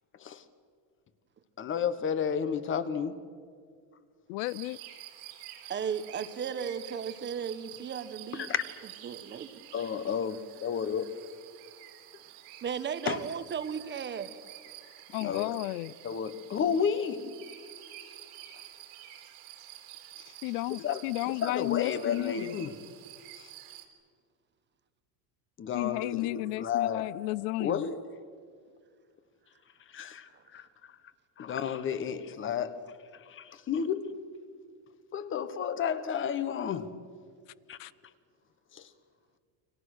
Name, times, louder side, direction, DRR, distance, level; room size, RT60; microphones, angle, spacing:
voice 1, 1.6-3.2 8.3-8.6 9.7-11.1 13.1-13.2 15.2-15.6 16.0-17.4 20.7-22.8 23.4-23.5 25.6-27.1 27.6-28.0 29.9-30.7 31.4-32.8 33.3-34.2 35.1-37.0 37.7-37.8 38.7-38.9, left 7 dB, 25° left, 1.2 m, -32 dB
voice 2, 4.3-4.8 15.1-15.9 20.4-22.6 25.7-27.9 37.8-37.9, left 21 dB, 70° left, 0.5 m, -33 dB
sound 1, 4.5-23.8, right 12 dB, 85° right, 3.9 m, -49 dB
voice 3, 5.7-8.5 9.0-9.5 12.6-14.3, right 7 dB, 25° right, 1.1 m, -35 dB
29.5 x 25.0 x 6.5 m
cardioid pair, 160°, 46 cm